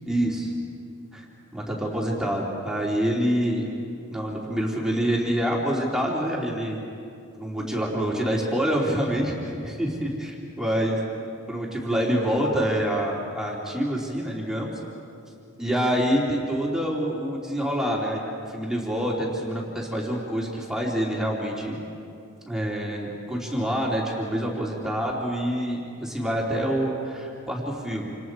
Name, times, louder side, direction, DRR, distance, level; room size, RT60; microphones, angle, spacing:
voice 1, 0.0-0.5 1.1-1.2 1.5-3.7 4.1-6.8 7.4-11.0 11.5-14.7 15.6-21.8 22.5-28.1, equal, ahead, -4 dB, 3.2 m, -26 dB
28.5 x 28.0 x 4.8 m, 2.6 s
head